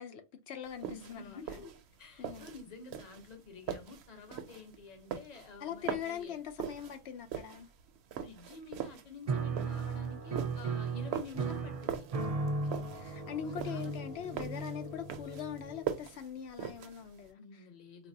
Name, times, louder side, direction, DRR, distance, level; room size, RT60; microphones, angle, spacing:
voice 1, 0.0-1.6 2.2-2.5 5.6-7.7 12.4-17.4, left 9 dB, 85° left, 0.9 m, -42 dB
sound 1, 0.7-17.3, right 9 dB, 85° right, 0.8 m, -42 dB
voice 2, 0.9-1.7 2.0-6.4 8.1-12.1 13.4-14.3 17.4-18.1, left 4 dB, 40° left, 0.9 m, -50 dB
Piano, 9.3-16.0, right 4 dB, 45° right, 0.5 m, -36 dB
4.0 x 2.5 x 2.7 m
omnidirectional pair, 1.1 m